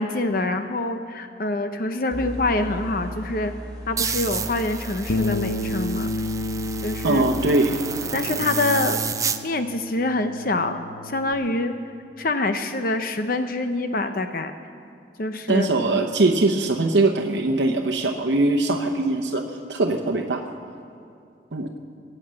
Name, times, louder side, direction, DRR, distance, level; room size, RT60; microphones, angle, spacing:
voice 1, 0.0-3.5 3.9-6.1 6.8-7.2 8.1-9.0 9.4-10.8 11.0-11.7 12.2-14.5 15.2-15.7, left 2 dB, 55° left, 8 dB, 0.7 m, -25 dB
sound 1, 2.1-7.1, equal, 5° left, 2.9 m, -36 dB
sound 2, 4.0-9.4, right 6 dB, 20° right, 0.5 m, -30 dB
Bass guitar, 5.1-11.3, left 2 dB, 90° left, 0.9 m, -31 dB
voice 2, 7.0-7.7 15.5-20.4 21.5-21.7, right 2 dB, 85° right, 2 dB, 0.9 m, -21 dB
20.5 x 9.0 x 7.6 m, 2.5 s
head